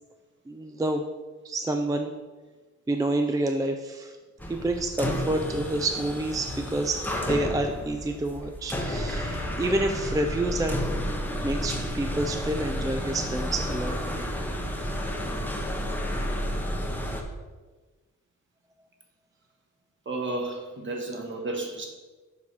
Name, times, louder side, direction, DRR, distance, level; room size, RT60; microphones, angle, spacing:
voice 1, 0.5-1.0 1.4-2.1 2.9-4.2 4.5-7.0 7.3-10.8 11.4-14.0, right 1 dB, 10° right, 4 dB, 0.3 m, -28 dB
sound 1, 4.4-17.2, equal, 5° left, 0.8 m, -31 dB
voice 2, 20.0-21.9, right 2 dB, 40° right, 2 dB, 1.3 m, -32 dB
7.2 x 5.6 x 4.7 m, 1.3 s
wide cardioid pair, 155°, 30 cm